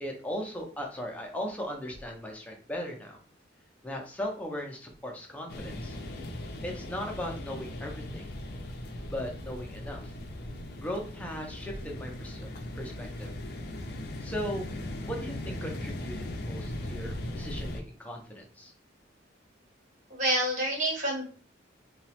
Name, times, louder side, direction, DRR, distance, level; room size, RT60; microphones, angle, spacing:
voice 1, 0.0-3.2 3.8-6.0 6.6-8.3 9.1-10.1 10.8-12.5 12.8-13.3 14.2-14.7 15.0-18.7, equal, 10° left, 1 dB, 0.5 m, -38 dB
sound 1, 5.5-17.8, left 1 dB, 55° left, 0.4 m, -38 dB
voice 2, 20.1-21.2, right 1 dB, 45° right, -3 dB, 1.1 m, -28 dB
2.9 x 2.1 x 2.8 m, 0.41 s
head